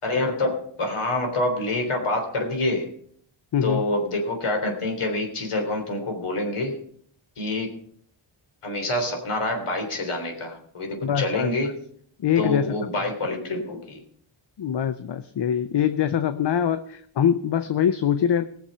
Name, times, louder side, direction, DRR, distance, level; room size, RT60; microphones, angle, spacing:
voice 1, 0.0-2.9 3.6-6.8 7.4-7.7 8.6-11.8 12.4-14.0, left 2 dB, 80° left, 3 dB, 3.6 m, -26 dB
voice 2, 3.5-3.8 11.0-11.5 12.2-12.7 14.6-18.5, left 9 dB, 55° left, 11 dB, 0.7 m, -23 dB
20.0 x 7.2 x 5.5 m, 0.62 s
wide cardioid pair, 100°, 50 cm